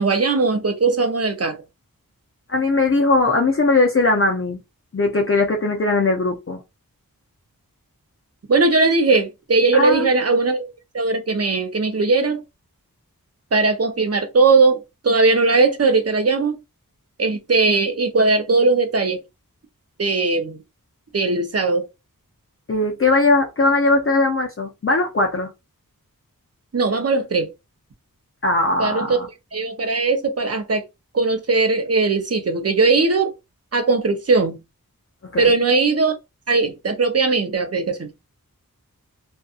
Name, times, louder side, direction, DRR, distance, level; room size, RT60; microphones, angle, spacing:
voice 1, 0.0-1.6 8.5-10.7 10.9-12.4 13.5-16.5 17.2-19.2 20.0-20.6 21.1-21.8 26.7-27.5 28.8-29.2 29.5-30.8 31.1-33.3 33.7-34.6 35.4-36.1 36.5-38.1, right 3 dB, 45° right, 0.7 m, -19 dB
voice 2, 2.5-4.6 4.9-6.6 9.7-10.1 22.7-25.5 28.4-29.3 35.3-35.5, left 2 dB, 40° left, 0.5 m, -19 dB
2.6 x 2.3 x 2.4 m
wide cardioid pair, 45°, 35 cm